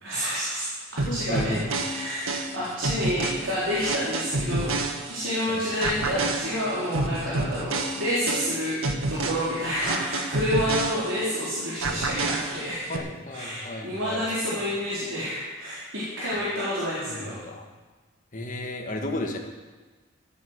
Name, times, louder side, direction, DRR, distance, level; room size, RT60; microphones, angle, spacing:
voice 1, 0.0-4.7 5.1-12.9 13.3-17.4, equal, 65° right, -9 dB, 4.1 m, -29 dB
sound 1, 1.0-5.4 5.8-11.4 11.8-13.0, right 3 dB, 90° right, 1.6 m, -29 dB
voice 2, 1.1-1.7 5.5-5.6 12.9-14.2 14.5-14.6 17.0-17.6 18.3-19.4, left 1 dB, 40° left, 2 dB, 1.8 m, -33 dB
14.5 x 8.5 x 8.2 m, 1.3 s
head